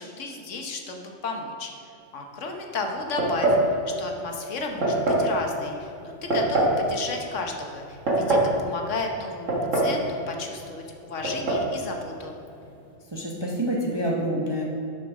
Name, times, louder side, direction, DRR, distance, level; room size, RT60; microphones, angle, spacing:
voice 1, 0.0-1.7 2.1-3.6 4.0-12.3, left 3 dB, 65° left, 2 dB, 1.2 m, -33 dB
sound 1, 3.2-3.7 4.8-5.3 6.3-6.8 7.8-8.5 9.5-10.0 10.3-10.4 11.2-11.7, right 2 dB, 65° right, 1.8 m, -22 dB
voice 2, 13.1-14.6, equal, 25° right, -2 dB, 0.6 m, -27 dB
7.2 x 5.1 x 6.0 m, 2.7 s
omnidirectional pair, 1.4 m